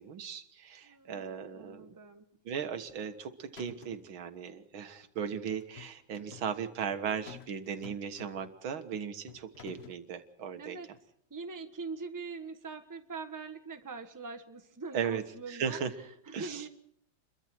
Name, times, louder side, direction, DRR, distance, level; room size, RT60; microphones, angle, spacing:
voice 1, 0.0-2.0 2.5-10.8 14.9-15.9 16.3-16.6, right 7 dB, 80° right, 8 dB, 2.1 m, -37 dB
voice 2, 0.8-2.2 10.6-10.9 11.3-16.7, right 4 dB, 10° right, 6 dB, 1.1 m, -43 dB
sound 1, 2.9-3.3 3.6-4.1 5.6-6.5 7.3-7.6 7.8-8.6 9.3-10.0, left 7 dB, 45° left, 0.9 m, -51 dB
28.0 x 22.5 x 4.5 m, 0.70 s
omnidirectional pair, 2.2 m